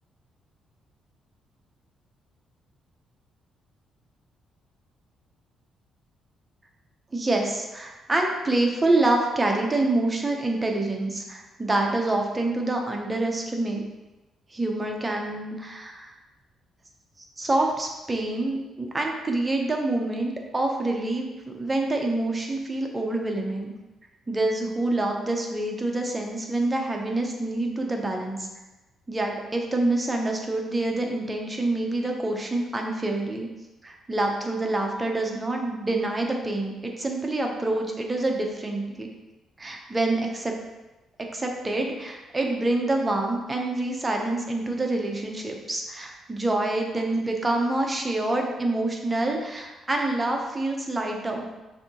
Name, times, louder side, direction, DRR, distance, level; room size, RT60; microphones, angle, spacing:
voice 1, 7.1-13.9 14.5-16.1 17.4-23.7 24.3-28.5 29.1-33.5 33.8-39.1 39.6-40.5 41.2-51.5, right 2 dB, 20° right, 1 dB, 0.7 m, -26 dB
6.4 x 2.7 x 2.9 m, 1.1 s
cardioid pair, 90°, 0 cm